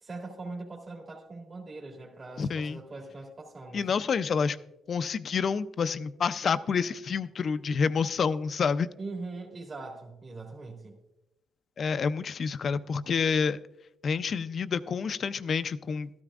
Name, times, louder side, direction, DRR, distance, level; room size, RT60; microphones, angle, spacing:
voice 1, 0.0-3.9 9.0-11.0, right 3 dB, 35° right, -1 dB, 1.9 m, -41 dB
voice 2, 2.4-2.8 3.7-4.6 4.9-8.9 11.8-13.6 14.0-16.1, left 6 dB, 50° left, 13 dB, 0.4 m, -28 dB
13.0 x 13.0 x 2.4 m, 0.91 s
cardioid pair, 90°, 0 cm